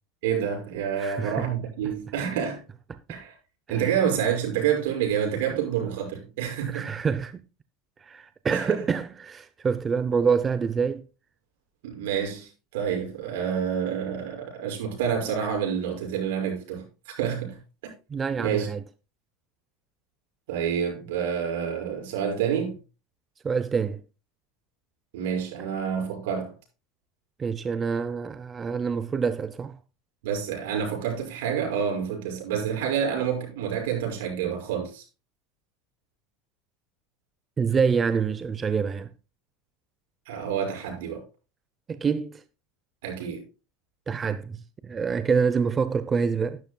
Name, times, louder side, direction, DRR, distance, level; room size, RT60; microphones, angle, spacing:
voice 1, 0.2-2.6 3.1-3.3 3.7-6.9 8.5-8.8 11.8-17.6 18.4-18.7 20.5-22.8 25.1-26.5 30.2-35.0 40.3-41.2 43.0-43.4, right 8 dB, 80° right, 6.4 m, -28 dB
voice 2, 1.0-1.5 1.8-1.9 2.9-3.2 3.7-3.8 6.7-7.4 8.0-11.0 18.1-18.8 23.4-24.0 27.4-29.8 37.6-39.1 41.9-42.4 44.1-46.6, right 6 dB, 20° right, 0.7 m, -26 dB
12.0 x 12.0 x 2.3 m
supercardioid pair, 140°, 0 cm